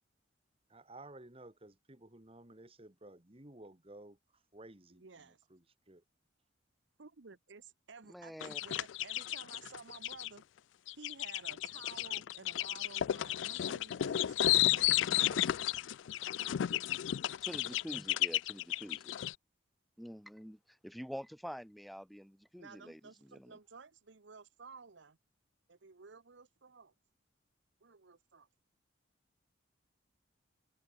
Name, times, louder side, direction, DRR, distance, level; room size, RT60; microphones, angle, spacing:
voice 1, 0.7-4.2 4.5-6.0, right 2 dB, 30° right, 1.9 m, -54 dB
voice 2, 4.9-5.4 7.0-10.4 10.9-15.8 22.6-25.2 25.7-26.9 27.8-28.5, right 4 dB, 70° right, 0.9 m, -54 dB
voice 3, 8.1-8.6 17.4-19.2 20.0-23.0 23.3-23.5, equal, ahead, 1.0 m, -46 dB
sound 1, 8.4-10.3 10.9-19.3, left 13 dB, 75° left, 0.3 m, -33 dB
head